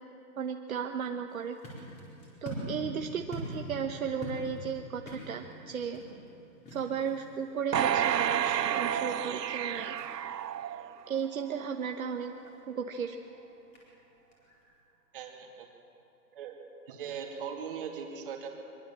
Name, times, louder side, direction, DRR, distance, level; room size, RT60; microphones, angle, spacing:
voice 1, 0.4-1.6 2.4-6.0 6.7-9.9 11.1-12.3 12.7-13.2, right 6 dB, 55° right, 4 dB, 1.3 m, -35 dB
falling gumtree, 1.3-14.8, equal, 15° left, 4.4 m, -46 dB
sound 1, 7.7-11.2 11.7-11.8, right 10 dB, 75° right, 0.8 m, -30 dB
voice 2, 15.1-15.7 16.3-16.6 16.9-18.5, right 7 dB, 30° right, 2 dB, 2.8 m, -39 dB
23.5 x 22.0 x 7.5 m, 2.8 s
hypercardioid pair, 165°, 49 cm